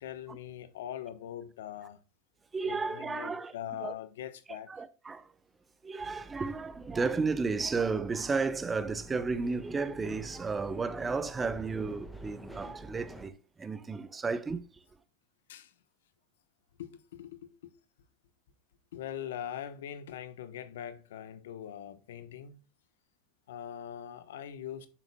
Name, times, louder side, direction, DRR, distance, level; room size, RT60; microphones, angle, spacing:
voice 1, 0.0-2.0 2.6-4.7 15.5-15.7 16.8-17.7 18.9-22.6 23.5-24.9, left 10 dB, 80° left, 1.1 m, -42 dB
voice 2, 2.5-3.5 3.8-3.9 4.5-5.3 5.8-14.7, right 4 dB, 20° right, 0.9 m, -33 dB
sound 1, 6.0-13.3, right 1 dB, ahead, 1.5 m, -48 dB
8.7 x 6.8 x 2.3 m
hypercardioid pair, 105°, 0 cm